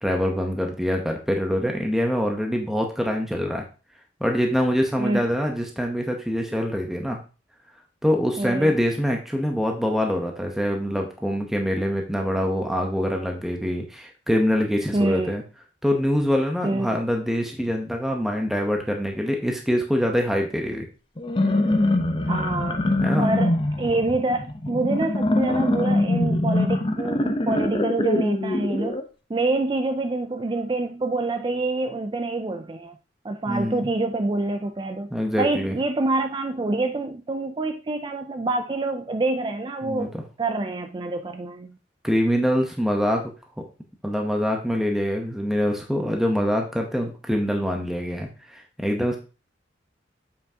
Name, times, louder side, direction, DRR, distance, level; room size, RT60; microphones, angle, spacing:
voice 1, 0.0-3.6 4.2-7.2 8.0-15.4 15.8-20.9 23.0-23.3 33.5-33.9 35.1-35.8 39.8-40.1 42.0-43.3 44.0-49.2, equal, ahead, 2 dB, 0.8 m, -24 dB
voice 2, 8.4-8.7 14.9-15.3 16.6-16.9 22.3-22.8 23.2-29.0 29.3-33.0 33.2-35.1 35.4-40.1 40.4-41.7, right 2 dB, 25° right, 7 dB, 0.4 m, -26 dB
sound 1, 21.2-29.0, left 1 dB, 25° left, 0.7 m, -23 dB
7.2 x 5.8 x 2.8 m, 0.33 s
head